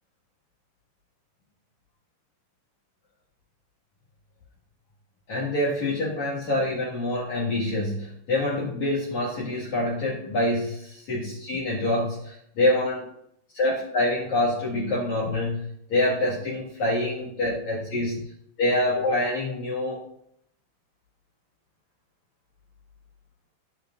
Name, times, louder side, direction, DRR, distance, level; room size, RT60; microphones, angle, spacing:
voice 1, 5.3-13.1 13.5-18.2 18.6-20.0, left 1 dB, 55° left, -4 dB, 2.2 m, -26 dB
17.5 x 6.5 x 2.5 m, 0.73 s
omnidirectional pair, 5.6 m